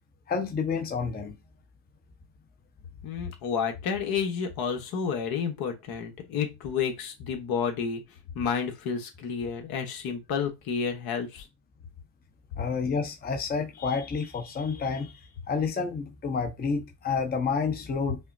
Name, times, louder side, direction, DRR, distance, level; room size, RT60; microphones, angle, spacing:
voice 1, 0.3-1.4 12.6-15.2 15.5-18.2, left 5 dB, 20° left, 0.9 m, -29 dB
voice 2, 3.0-8.0 8.3-11.5, left 6 dB, 60° left, 1.2 m, -30 dB
5.5 x 2.1 x 2.6 m
supercardioid pair, 95°, 42 cm